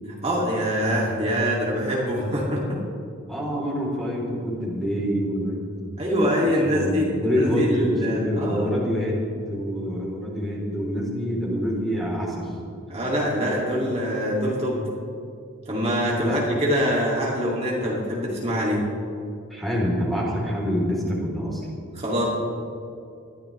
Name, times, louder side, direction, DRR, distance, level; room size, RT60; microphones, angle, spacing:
voice 1, 0.2-2.8 6.0-8.7 12.9-14.8 15.7-18.8 21.9-22.3, equal, 30° right, -5 dB, 2.5 m, -24 dB
voice 2, 3.3-5.8 6.6-9.2 9.5-12.5 16.1-16.4 19.5-21.7, equal, ahead, -4 dB, 3.5 m, -26 dB
21.5 x 13.5 x 3.3 m, 2.5 s
head